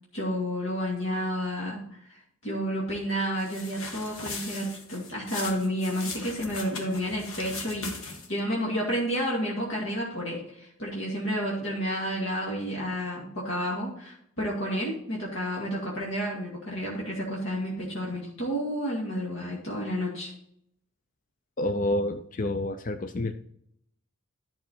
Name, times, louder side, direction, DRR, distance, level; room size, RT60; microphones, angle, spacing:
voice 1, 0.1-20.3, equal, 65° left, -4 dB, 2.3 m, -31 dB
sound 1, 3.4-8.4, left 4 dB, 80° left, 1.7 m, -39 dB
voice 2, 21.6-23.3, left 1 dB, 40° left, 7 dB, 0.5 m, -28 dB
11.5 x 6.1 x 4.4 m, 0.71 s
head